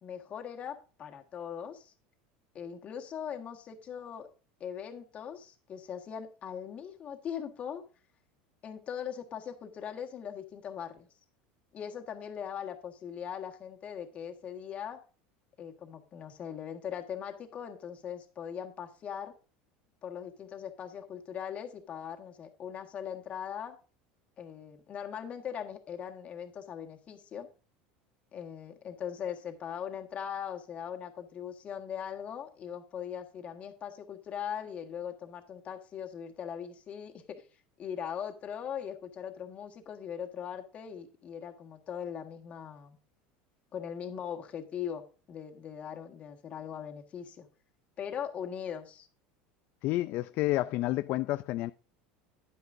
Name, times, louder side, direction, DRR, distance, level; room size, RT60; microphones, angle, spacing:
voice 1, 0.0-1.9 2.5-4.3 4.6-7.8 8.6-11.1 11.7-15.0 15.6-19.3 20.0-23.8 24.4-27.5 28.3-37.1 37.8-43.0 43.7-45.0 45.3-47.5 48.0-49.1, left 8 dB, 35° left, 1.5 m, -40 dB
voice 2, 49.8-51.7, left 17 dB, 50° left, 0.3 m, -30 dB
10.0 x 9.5 x 2.6 m
supercardioid pair, 135°, 4 cm